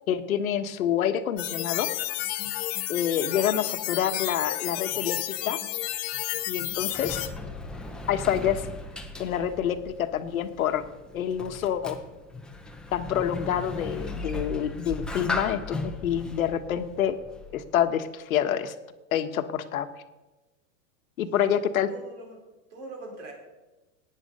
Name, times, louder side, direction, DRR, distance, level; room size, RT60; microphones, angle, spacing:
voice 1, 0.1-1.9 2.9-5.6 6.5-7.2 8.1-8.6 9.2-10.8 11.1-12.0 12.9-17.1 17.5-18.7 19.1-19.9 21.2-21.9, left 9 dB, 90° left, 9 dB, 1.4 m, -27 dB
sound 1, 1.4-7.3, left 15 dB, 40° left, 1.4 m, -31 dB
Sliding door, 6.4-17.8, left 2 dB, ahead, 0.6 m, -37 dB
voice 2, 6.7-7.2 21.2-22.4 22.7-23.3, right 2 dB, 60° right, -1 dB, 4.2 m, -45 dB
17.0 x 9.6 x 5.4 m, 1.1 s
supercardioid pair, 150°, 40 cm